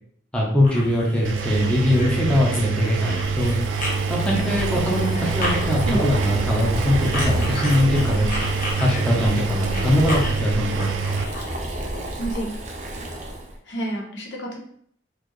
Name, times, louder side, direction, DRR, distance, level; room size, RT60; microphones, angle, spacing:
voice 1, 0.3-3.6 4.1-8.3 8.8-10.9, left 1 dB, 5° left, -4 dB, 0.8 m, -22 dB
sound 1, 0.6-11.6, left 1 dB, 45° left, 1.2 m, -34 dB
Engine, 1.2-11.2, right 5 dB, 75° right, 0.3 m, -26 dB
Boiling, 2.3-13.6, right 1 dB, 40° right, 0.7 m, -30 dB
voice 2, 12.2-12.5 13.6-14.6, right 1 dB, 70° left, -1 dB, 1.0 m, -28 dB
4.2 x 2.8 x 3.1 m, 0.63 s
head